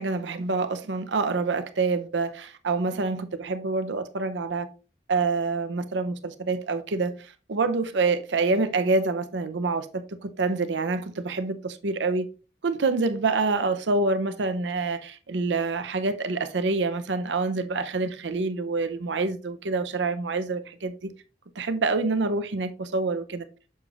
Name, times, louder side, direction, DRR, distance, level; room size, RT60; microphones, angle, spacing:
voice 1, 0.0-4.7 5.1-12.3 12.6-21.1 21.6-23.5, right 3 dB, 70° right, 0.6 m, -27 dB
6.7 x 6.6 x 2.4 m
head